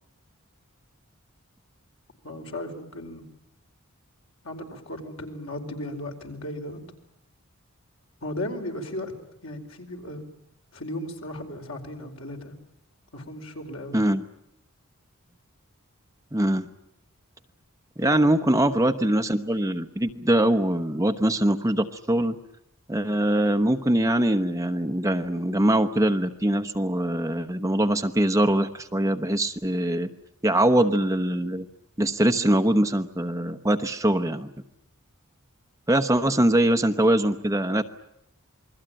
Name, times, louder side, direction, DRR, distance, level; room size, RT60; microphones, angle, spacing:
voice 1, 2.2-3.2 4.4-6.8 8.2-9.1 9.4-10.2 10.7-12.5 13.1-14.0 18.0-18.3 18.6-18.8, left 1 dB, 65° left, 3 dB, 4.8 m, -36 dB
voice 2, 13.9-14.2 16.3-16.7 18.0-22.4 22.9-30.1 30.4-31.7 32.0-34.5 35.9-37.8, right 1 dB, 15° right, 8 dB, 1.0 m, -23 dB
28.0 x 21.5 x 8.9 m, 0.77 s
head